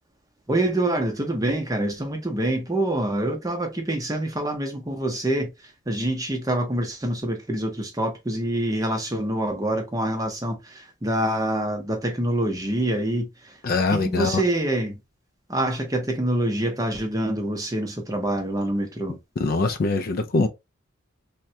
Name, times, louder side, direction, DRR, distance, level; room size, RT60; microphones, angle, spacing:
voice 1, 0.5-5.5 5.9-10.5 11.0-13.3 13.9-14.9 15.5-19.2, right 1 dB, 15° right, 0.6 m, -25 dB
voice 2, 13.6-14.4 19.4-20.5, left 3 dB, 45° left, 0.3 m, -23 dB
3.5 x 2.1 x 2.7 m
head